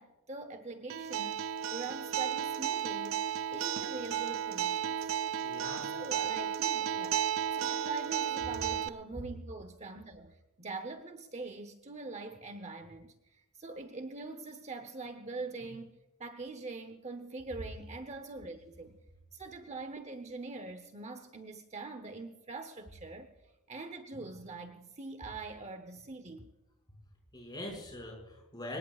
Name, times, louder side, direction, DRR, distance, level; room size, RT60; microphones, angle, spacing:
voice 1, 0.0-1.4 1.7-3.2 3.5-5.0 5.9-13.1 13.6-15.9 16.2-19.0 19.3-23.3 23.7-26.5, right 3 dB, 30° right, 8 dB, 0.8 m, -43 dB
Acoustic guitar, 0.9-8.9, right 9 dB, 60° right, 0.6 m, -33 dB
voice 2, 5.4-6.0 27.3-28.8, left 1 dB, 20° left, 0 dB, 5.7 m, -42 dB
25.0 x 20.0 x 2.4 m, 0.99 s
head